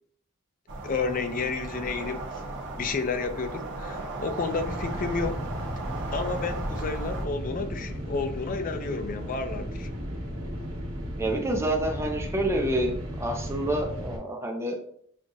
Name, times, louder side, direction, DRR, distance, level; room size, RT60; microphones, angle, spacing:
sound 1, 0.7-7.3, right 2 dB, 60° right, 0.7 m, -36 dB
voice 1, 0.8-2.3 2.7-5.4 6.1-9.9, left 4 dB, 40° left, 8 dB, 0.4 m, -31 dB
sound 2, 4.4-14.2, equal, 85° right, 1.3 m, -35 dB
voice 2, 11.2-14.8, right 1 dB, 15° right, 1 dB, 0.6 m, -28 dB
6.3 x 2.4 x 2.6 m, 0.64 s
head